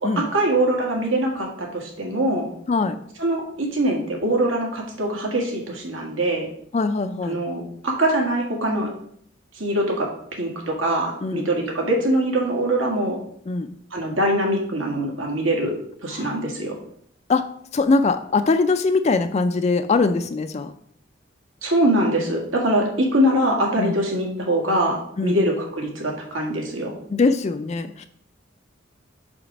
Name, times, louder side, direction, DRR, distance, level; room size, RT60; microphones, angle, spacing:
voice 1, 0.0-2.5 3.2-6.5 7.3-8.9 9.6-10.1 10.4-13.2 13.9-15.8 16.0-16.8 21.6-26.9, right 1 dB, 85° right, 0 dB, 1.9 m, -23 dB
voice 2, 2.7-3.0 6.7-7.4 11.2-11.4 13.5-13.8 16.1-16.3 17.3-17.5 17.7-20.7 23.8-24.0 25.2-25.4 27.1-28.1, left 3 dB, 35° left, 9 dB, 0.3 m, -22 dB
5.1 x 4.9 x 6.0 m, 0.65 s
head